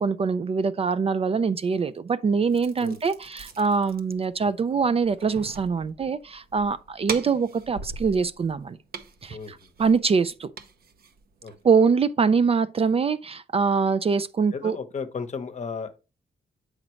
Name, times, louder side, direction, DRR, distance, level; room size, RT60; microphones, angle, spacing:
voice 1, 0.0-8.8 9.2-10.5 11.6-14.8, right 5 dB, 35° right, 0.3 m, -24 dB
sound 1, 2.5-11.8, right 5 dB, 60° right, 0.8 m, -42 dB
voice 2, 14.5-16.0, left 5 dB, 40° left, 0.8 m, -34 dB
7.3 x 5.0 x 3.1 m
cardioid pair, 105°, 17 cm